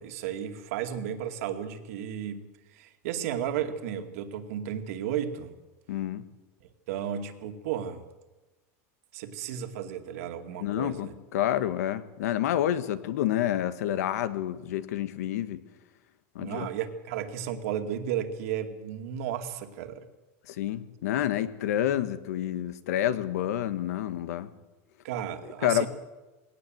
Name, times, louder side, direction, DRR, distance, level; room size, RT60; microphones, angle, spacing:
voice 1, 0.0-5.6 6.9-8.0 9.1-11.1 16.4-20.0 25.0-25.9, right 9 dB, 65° right, 6 dB, 2.4 m, -34 dB
voice 2, 5.9-6.2 10.6-15.6 16.3-16.7 20.5-24.5 25.6-25.9, left 11 dB, 85° left, 12 dB, 1.6 m, -28 dB
20.5 x 18.0 x 8.0 m, 1.1 s
supercardioid pair, 165°, 8 cm